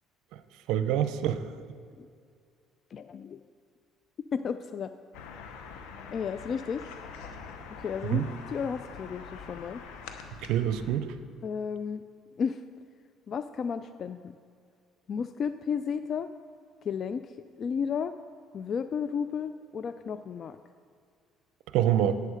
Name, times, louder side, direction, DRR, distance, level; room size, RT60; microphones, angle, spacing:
voice 1, 0.7-1.4 8.1-8.3 10.4-11.1 21.7-22.2, right 10 dB, 80° right, 11 dB, 0.6 m, -25 dB
voice 2, 2.9-3.4 4.3-4.9 6.1-6.8 7.7-9.8 11.4-12.0 12.4-12.6 13.3-14.4 15.1-16.3 16.8-18.1 18.5-20.6, left 6 dB, 45° left, 11 dB, 0.3 m, -33 dB
sound 1, 5.1-11.0, left 5 dB, 85° left, 0.9 m, -44 dB
11.0 x 8.5 x 5.0 m, 2.3 s
cardioid pair, 95°, 0 cm